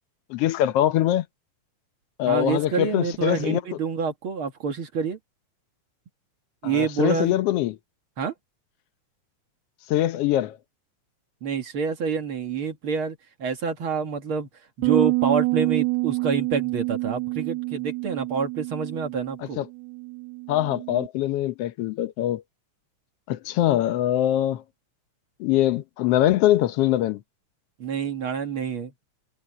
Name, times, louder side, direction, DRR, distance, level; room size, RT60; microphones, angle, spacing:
voice 1, 0.3-1.2 2.2-3.6 6.6-7.8 9.9-10.6 19.6-19.7 20.5-22.4 23.3-24.6 25.4-27.2, left 13 dB, 70° left, 1.5 m, -23 dB
voice 2, 2.3-5.2 6.6-7.4 8.2-8.3 11.4-14.5 14.8-19.6 27.8-28.9, right 6 dB, 50° right, 2.3 m, -27 dB
sound 1, 14.8-21.1, right 25 dB, 80° right, 1.6 m, -27 dB
omnidirectional pair, 3.5 m